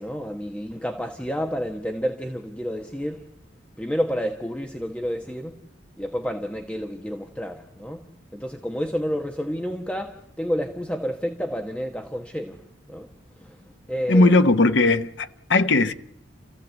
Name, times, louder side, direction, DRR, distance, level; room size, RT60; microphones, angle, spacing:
voice 1, 0.0-3.2 3.8-5.6 6.0-8.0 8.3-12.6 12.9-13.1 13.4-13.6 13.9-14.3, equal, 5° left, 1.1 m, -30 dB
voice 2, 14.1-15.9, left 2 dB, 65° left, 0.9 m, -18 dB
28.5 x 15.0 x 8.1 m
head